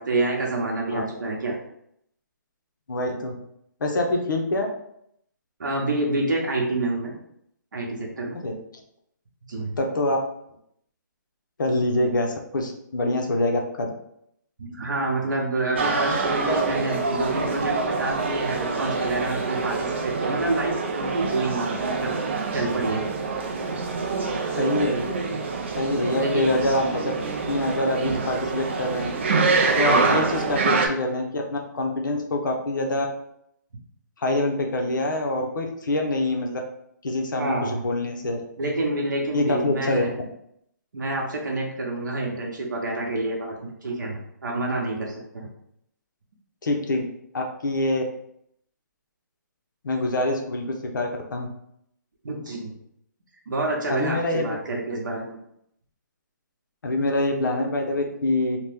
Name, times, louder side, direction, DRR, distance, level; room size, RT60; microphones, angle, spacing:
voice 1, 0.0-1.6 5.6-7.1 7.7-8.4 9.5-9.7 14.6-22.1 22.5-23.1 26.2-26.5 26.8-26.9 29.8-30.1 37.4-37.8 38.6-40.1 40.9-45.5 52.2-52.7 53.5-55.4, right 2 dB, 80° right, -1 dB, 0.8 m, -28 dB
voice 2, 2.9-3.3 3.8-4.7 8.3-8.5 9.8-10.2 11.6-13.9 16.5-16.6 24.6-25.4 25.8-27.1 27.5-29.1 29.8-33.1 34.2-36.6 37.0-38.4 39.3-40.0 46.6-47.0 47.3-48.0 49.8-51.5 53.9-54.5 56.8-58.6, left 1 dB, 80° left, 2 dB, 0.7 m, -25 dB
sound 1, 15.8-30.9, right 4 dB, 35° right, 0.3 m, -26 dB
2.9 x 2.1 x 3.3 m, 0.73 s
hypercardioid pair, 170°, 10 cm